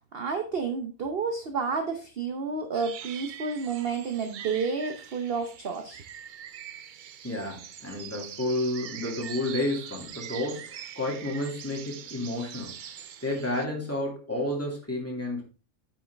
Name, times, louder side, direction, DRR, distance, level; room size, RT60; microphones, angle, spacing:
voice 1, 0.1-6.0, right 5 dB, 50° right, 6 dB, 0.9 m, -30 dB
sound 1, 2.7-13.7, right 9 dB, 85° right, 0.4 m, -43 dB
voice 2, 7.2-12.8 13.2-15.4, left 1 dB, 10° left, -2 dB, 2.3 m, -31 dB
8.4 x 6.4 x 3.4 m, 0.33 s
omnidirectional pair, 1.5 m